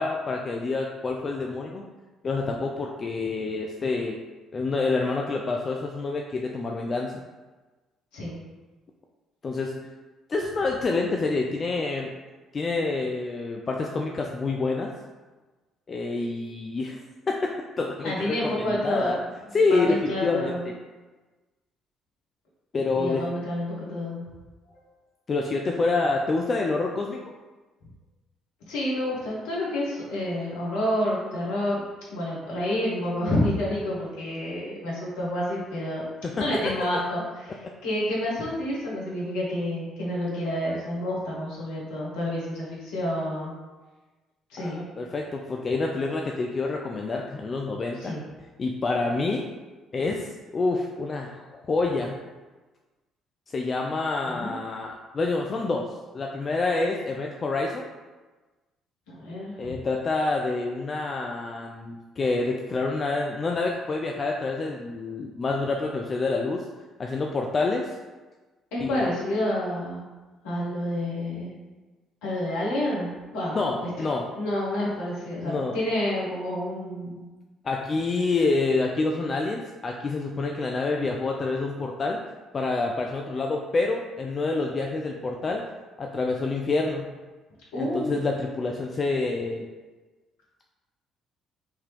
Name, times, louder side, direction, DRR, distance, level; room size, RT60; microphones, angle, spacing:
voice 1, 0.0-1.8 2.2-4.2 4.5-7.1 9.4-9.7 10.3-12.1 12.5-14.9 15.9-17.0 17.3-17.5 17.8-19.2 19.5-20.6 22.7-23.2 25.3-27.2 36.2-36.6 44.6-48.2 48.6-49.5 49.9-52.2 53.5-57.9 59.6-66.6 67.0-68.0 68.8-69.0 73.5-74.3 75.4-75.8 77.6-82.2 82.5-85.6 86.0-87.0 87.8-89.7, left 3 dB, 35° left, 0 dB, 0.3 m, -27 dB
voice 2, 18.0-19.1 19.7-20.6 22.9-24.2 24.7-24.9 28.7-31.8 32.1-36.0 36.3-43.6 44.5-44.9 48.0-48.2 54.3-54.5 59.1-59.7 68.7-70.0 70.4-71.6 72.2-73.6 74.3-77.2 87.7-88.2, left 1 dB, 65° left, -5 dB, 1.1 m, -29 dB
3.6 x 2.8 x 3.1 m, 1.2 s
figure-of-eight pair, 45°, 0 cm